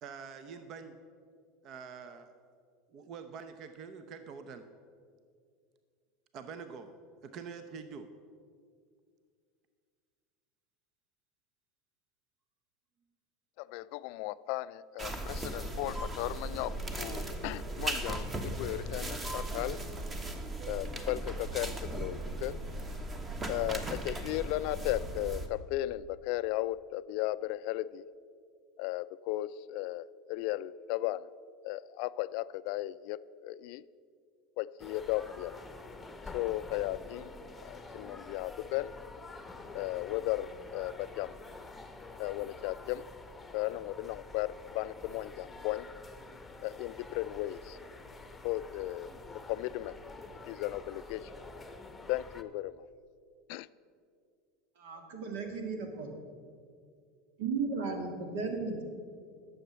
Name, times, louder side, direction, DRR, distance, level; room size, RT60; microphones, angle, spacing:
voice 1, 0.0-0.9 1.6-2.3 2.9-4.6 6.3-6.9 7.2-8.1, right 6 dB, 50° right, 9 dB, 0.7 m, -45 dB
voice 2, 13.6-19.8 20.7-22.6 23.5-28.1 28.8-31.3 31.6-33.8 34.6-35.6 36.3-37.3 37.6-38.9 39.7-41.4 42.2-43.0 43.5-45.9 46.6-47.8 48.4-49.1 49.5-50.0 50.5-51.3 52.1-52.9 53.5-53.7, left 16 dB, 65° left, 17 dB, 0.3 m, -36 dB
sound 1, 15.0-25.5, right 1 dB, 20° right, 1.2 m, -37 dB
sound 2, 34.8-52.4, left 3 dB, 10° left, 0.9 m, -48 dB
voice 3, 54.8-56.1 57.4-58.8, right 4 dB, 75° right, 4 dB, 2.0 m, -35 dB
11.5 x 7.2 x 6.8 m, 2.2 s
supercardioid pair, 115°, 0 cm